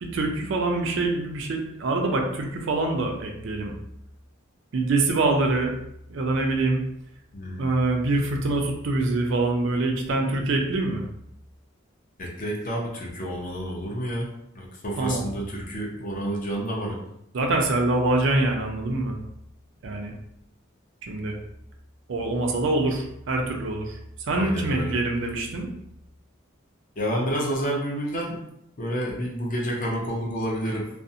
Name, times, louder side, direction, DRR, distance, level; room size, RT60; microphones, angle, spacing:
voice 1, 0.0-3.7 4.7-5.7 6.1-6.8 7.6-11.0 15.0-15.3 17.3-19.2 19.8-20.1 21.0-21.4 22.1-25.7, right 2 dB, 60° right, 2 dB, 0.4 m, -25 dB
voice 2, 7.3-7.7 12.2-14.3 14.5-17.0 24.3-24.9 27.0-28.4 28.8-30.9, equal, 40° left, -2 dB, 0.6 m, -29 dB
2.4 x 2.0 x 2.6 m, 0.77 s
head